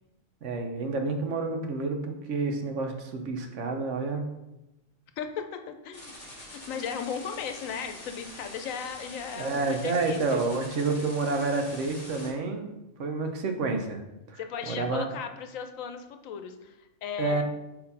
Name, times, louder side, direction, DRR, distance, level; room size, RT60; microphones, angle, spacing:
voice 1, 0.4-4.3 9.3-12.7 13.0-14.0 14.3-15.1 17.2-17.4, right 3 dB, 70° right, 4 dB, 1.1 m, -29 dB
voice 2, 5.2-6.1 6.7-10.4 14.4-17.4, left 7 dB, 90° left, 7 dB, 1.1 m, -36 dB
sound 1, 5.9-12.3, left 1 dB, 30° left, 1.6 m, -45 dB
4.5 x 4.3 x 5.3 m, 0.94 s
omnidirectional pair, 1.3 m